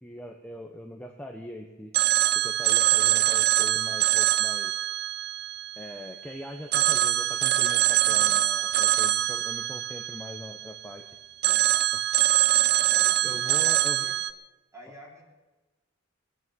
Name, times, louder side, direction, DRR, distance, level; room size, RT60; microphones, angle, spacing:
voice 1, 0.0-1.9 2.3-4.7 5.8-11.0 11.9-12.0 13.2-14.1, left 1 dB, 5° left, 2 dB, 0.9 m, -41 dB
Telephone, 1.9-6.2 6.7-10.9 11.4-14.3, right 13 dB, 50° right, 0.5 m, -24 dB
voice 2, 12.8-14.2 14.7-15.2, right 1 dB, 15° right, -1 dB, 3.2 m, -47 dB
21.5 x 9.7 x 6.2 m, 1.2 s
head